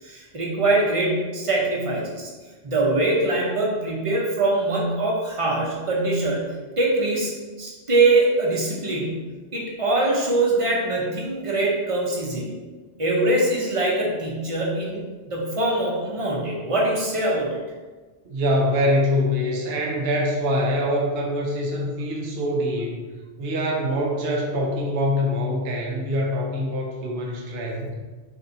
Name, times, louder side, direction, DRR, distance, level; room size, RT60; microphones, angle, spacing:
voice 1, 0.0-2.3 2.6-7.3 7.6-9.3 9.5-12.5 13.0-17.6, right 2 dB, 35° right, -3 dB, 0.7 m, -23 dB
voice 2, 18.2-23.0 23.4-27.9, left 1 dB, 65° right, -1 dB, 0.9 m, -24 dB
4.2 x 3.3 x 2.7 m, 1.3 s
omnidirectional pair, 1.2 m